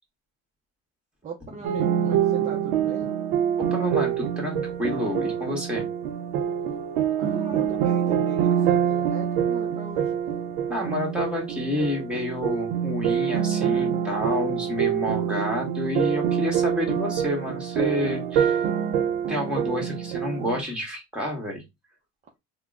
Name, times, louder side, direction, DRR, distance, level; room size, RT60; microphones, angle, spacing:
voice 1, 1.2-3.2 7.2-10.2, right 5 dB, 25° right, 0.6 m, -38 dB
sound 1, 1.6-20.6, right 9 dB, 90° right, 0.6 m, -25 dB
voice 2, 3.6-5.9 10.7-18.6 19.3-21.6, left 1 dB, 5° right, 1.6 m, -29 dB
3.4 x 2.2 x 3.6 m
cardioid pair, 125°, 29 cm